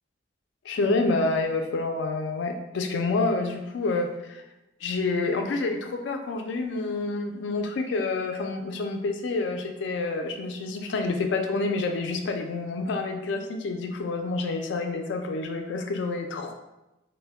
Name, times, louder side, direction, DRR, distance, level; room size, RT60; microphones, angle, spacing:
voice 1, 0.7-4.4 4.8-16.5, left 3 dB, 65° left, 4 dB, 0.3 m, -28 dB
2.1 x 2.1 x 3.4 m, 0.97 s
head